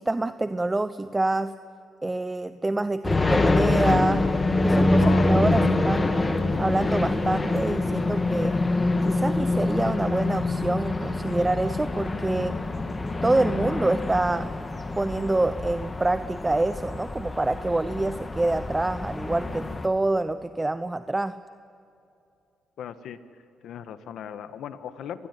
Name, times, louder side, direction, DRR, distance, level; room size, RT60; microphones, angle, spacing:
voice 1, 0.0-1.5 2.0-4.3 4.6-6.2 6.6-8.6 9.0-12.6 13.2-14.5 15.0-21.4, right 2 dB, 15° right, 13 dB, 0.7 m, -26 dB
sound 1, 3.0-19.9, left 2 dB, 25° left, 2.1 m, -25 dB
voice 2, 4.9-5.3 22.8-23.2 23.6-25.3, left 9 dB, 75° left, 12 dB, 1.4 m, -37 dB
26.5 x 20.0 x 9.8 m, 2.7 s
cardioid pair, 90°, 0 cm